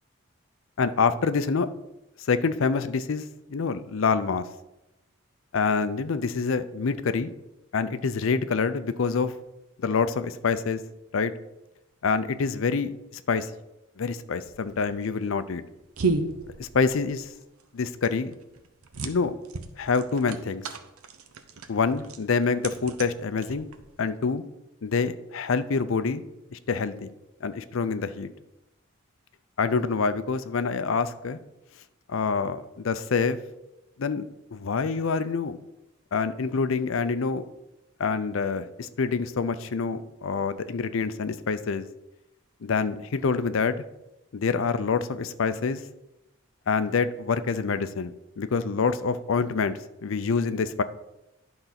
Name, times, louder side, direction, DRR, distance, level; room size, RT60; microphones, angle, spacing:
voice 1, 0.8-1.7 2.3-3.2 3.5-4.5 5.5-7.3 7.7-9.3 9.8-10.8 11.1-11.3 12.0-13.5 14.0-15.6 16.6-17.3 17.7-18.3 19.0-19.3 19.8-20.6 21.7-23.7 24.0-24.4 24.8-26.2 26.5-27.1 27.4-28.3 29.6-31.4 32.1-33.4 34.0-34.2 34.5-35.6 36.1-37.4 38.0-41.9 42.6-43.8 44.3-45.8 46.7-50.8, left 5 dB, 65° left, 12 dB, 0.5 m, -26 dB
sound 1, 14.5-24.0, right 3 dB, 85° right, 0.7 m, -35 dB
10.5 x 3.9 x 5.8 m, 0.94 s
head